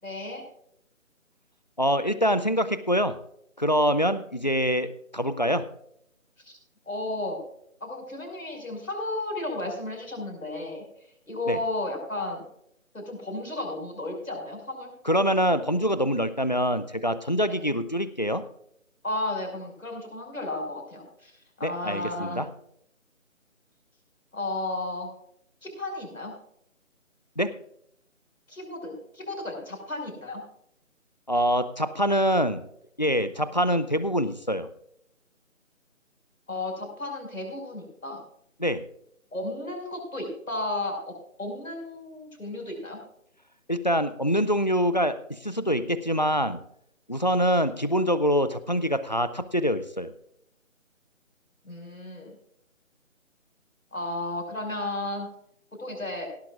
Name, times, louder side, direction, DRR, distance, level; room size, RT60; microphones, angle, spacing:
voice 1, 0.0-0.5 6.4-6.6 6.9-7.4 7.8-10.8 11.3-12.4 12.9-14.9 17.5-17.6 19.0-21.3 21.6-22.5 24.3-25.1 25.6-26.3 28.5-30.4 36.5-38.2 39.3-43.0 51.6-52.4 53.9-55.3 55.8-56.3, left 2 dB, 80° left, 3 dB, 5.7 m, -33 dB
voice 2, 1.8-3.2 3.6-5.7 11.5-11.6 15.1-18.4 21.6-22.5 27.4-27.5 31.3-32.6 33.0-34.7 38.6-38.8 43.7-46.6 47.1-50.1, equal, 35° left, 13 dB, 0.5 m, -25 dB
17.5 x 13.0 x 2.5 m, 0.73 s
figure-of-eight pair, 155°, 40 cm